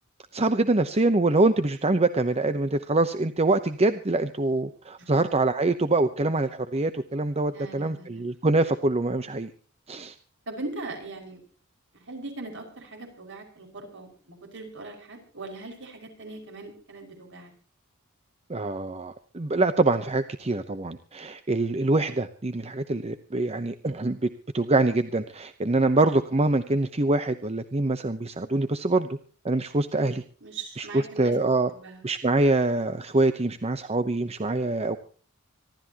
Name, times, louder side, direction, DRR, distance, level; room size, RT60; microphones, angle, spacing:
voice 1, 0.3-9.5 9.9-10.1 18.5-24.3 24.5-29.2 29.4-30.2 30.8-31.7 32.0-35.0, right 2 dB, 30° right, 10 dB, 0.8 m, -24 dB
voice 2, 7.5-8.2 10.5-11.4 11.9-17.5 29.9-30.1 30.4-32.1, right 2 dB, 60° right, 4 dB, 5.7 m, -40 dB
26.0 x 13.0 x 2.9 m, 0.42 s
head